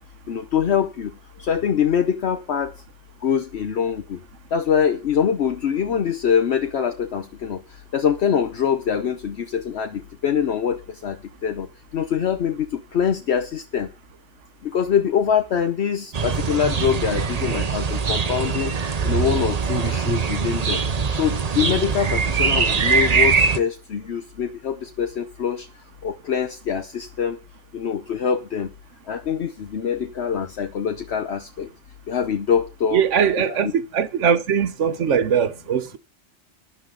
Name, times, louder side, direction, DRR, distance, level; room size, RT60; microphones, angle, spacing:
voice 1, 0.3-1.1 1.4-2.7 3.2-4.2 4.5-7.6 7.9-11.2 11.4-11.7 11.9-13.9 14.6-18.7 19.0-20.8 21.2-25.7 26.0-27.4 27.7-28.7 29.1-31.7 32.1-33.0 33.4-33.6, left 8 dB, 65° left, 1.1 m, -24 dB
sound 1, 16.1-23.6, right 5 dB, 40° right, 0.8 m, -22 dB
voice 2, 32.9-36.0, right 7 dB, 75° right, 1.2 m, -21 dB
15.0 x 10.0 x 3.8 m
omnidirectional pair, 1.2 m